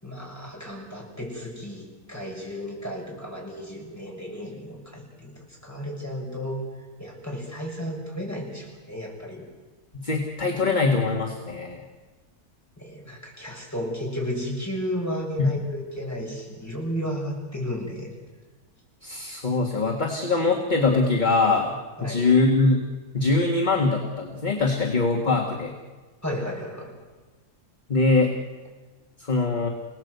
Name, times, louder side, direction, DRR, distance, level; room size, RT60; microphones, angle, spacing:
voice 1, 0.0-6.6 7.0-9.4 12.8-18.1 22.0-22.3 26.2-26.9, equal, 10° left, -2 dB, 6.9 m, -33 dB
voice 2, 9.9-11.8 15.4-15.5 19.0-22.8 23.1-25.7 27.9-28.3 29.2-29.7, left 3 dB, 30° left, 1 dB, 2.0 m, -22 dB
28.5 x 18.5 x 8.2 m, 1.3 s
omnidirectional pair, 1.6 m